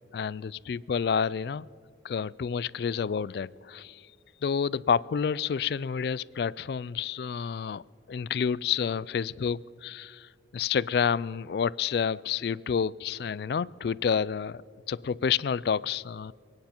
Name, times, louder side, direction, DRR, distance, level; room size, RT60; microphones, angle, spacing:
voice 1, 0.1-1.7 2.0-4.0 4.4-7.8 8.1-14.6 14.9-16.3, left 7 dB, 55° left, 21 dB, 0.3 m, -29 dB
29.0 x 9.7 x 4.4 m, 2.3 s
head